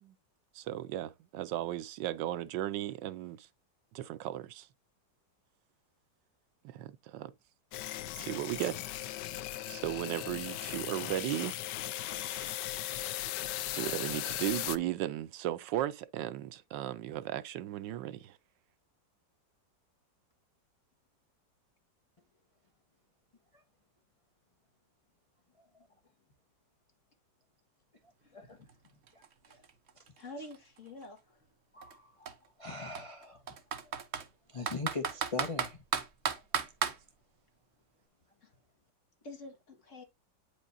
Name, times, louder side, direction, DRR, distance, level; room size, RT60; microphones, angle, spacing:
voice 1, 0.5-3.5 3.9-4.7 6.6-7.3 8.1-8.8 9.7-11.6 12.3-12.5 13.7-18.4, right 13 dB, 80° right, 1.3 m, -36 dB
sound 1, 7.7-14.8, left 13 dB, 75° left, 1.2 m, -38 dB
Computer keyboard, 28.7-28.8 29.1-31.0 31.8-31.9 32.3-32.4 32.9-34.3 34.7-37.0, right 7 dB, 50° right, 0.9 m, -34 dB
voice 2, 30.2-31.4 38.4-38.5 39.2-40.0, left 2 dB, 45° left, 2.0 m, -48 dB
voice 3, 31.7-33.4 34.5-35.8, left 4 dB, 25° left, 0.7 m, -40 dB
8.9 x 5.0 x 2.6 m
omnidirectional pair, 1.9 m